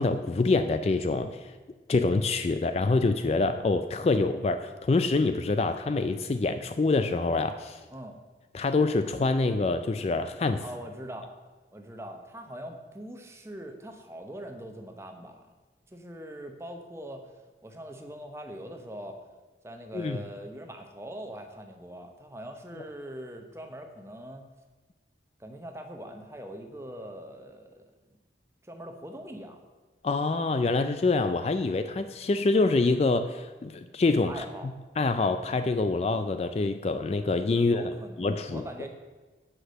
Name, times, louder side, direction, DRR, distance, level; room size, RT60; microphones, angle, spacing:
voice 1, 0.0-1.5 1.9-7.8 8.5-10.6 19.9-20.2 30.0-34.4 35.0-37.8 38.2-38.6, left 3 dB, 35° left, 10 dB, 0.3 m, -26 dB
voice 2, 10.6-11.3 11.7-15.5 15.9-17.3 17.6-19.2 19.6-24.5 25.4-28.2 28.6-29.6 34.3-34.7 37.6-38.9, right 1 dB, 15° right, 4 dB, 0.8 m, -42 dB
8.0 x 6.0 x 6.5 m, 1.3 s
head